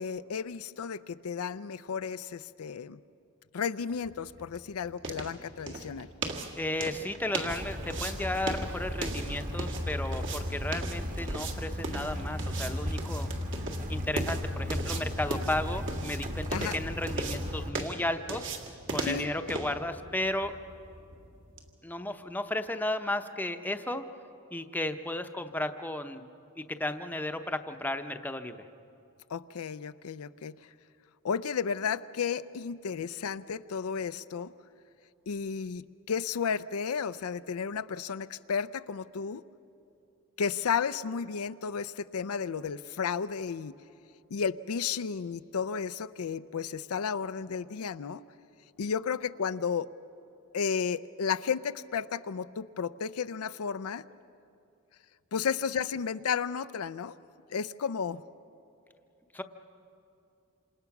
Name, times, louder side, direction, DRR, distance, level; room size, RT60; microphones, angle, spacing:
voice 1, 0.0-3.0 3.5-6.1 16.5-16.8 19.0-19.3 29.3-30.5 31.2-34.5 35.3-39.4 40.4-43.8 44.3-48.2 48.8-49.9 50.5-54.0 55.3-57.1 57.5-58.2, left 6 dB, 80° left, 13 dB, 0.5 m, -33 dB
sound 1, 3.9-21.7, right 2 dB, 60° right, 1.9 m, -39 dB
voice 2, 6.6-13.3 13.9-16.5 16.7-18.5 18.9-20.6 21.8-24.0 24.5-26.3 26.6-28.6 59.3-59.4, left 1 dB, 10° left, 7 dB, 0.8 m, -34 dB
sound 2, 7.5-17.7, equal, 40° right, 1.5 m, -35 dB
27.0 x 27.0 x 6.0 m, 2.7 s
head